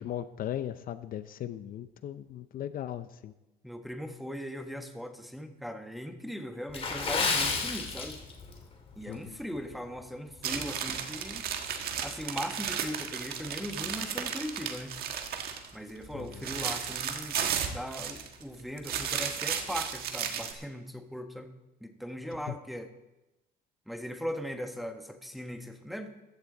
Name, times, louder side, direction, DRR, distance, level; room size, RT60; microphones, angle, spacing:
voice 1, 0.0-3.3 9.1-9.4 16.1-16.4, left 11 dB, 60° left, 12 dB, 0.6 m, -38 dB
voice 2, 3.6-8.2 9.0-11.4 12.0-15.0 15.7-21.5 21.8-22.9 23.9-26.1, equal, ahead, 5 dB, 1.3 m, -39 dB
Water / Splash splatter, 6.7-8.6 8.9-9.1 9.7-9.9 10.4-10.5, left 4 dB, 35° left, 2.5 m, -30 dB
sound 1, 10.4-15.7 16.0-18.4 18.8-20.5, right 8 dB, 65° right, 1.5 m, -34 dB
15.0 x 11.0 x 3.9 m, 1.0 s
cardioid pair, 110°, 17 cm